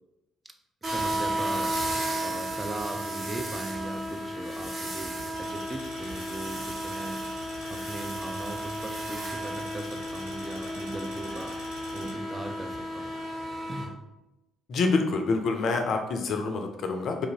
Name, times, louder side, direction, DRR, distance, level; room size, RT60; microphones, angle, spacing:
voice 1, 0.8-1.8 2.2-7.3 7.7-13.1 13.7-14.0, right 2 dB, 20° right, 5 dB, 0.5 m, -39 dB
sound 1, 0.8-13.8, right 1 dB, 40° right, 1.4 m, -33 dB
sound 2, 5.3-12.1, equal, 70° right, 1.4 m, -45 dB
voice 2, 14.7-17.3, left 3 dB, 55° left, 4 dB, 0.4 m, -27 dB
4.2 x 2.6 x 2.7 m, 0.90 s
figure-of-eight pair, 45°, 0 cm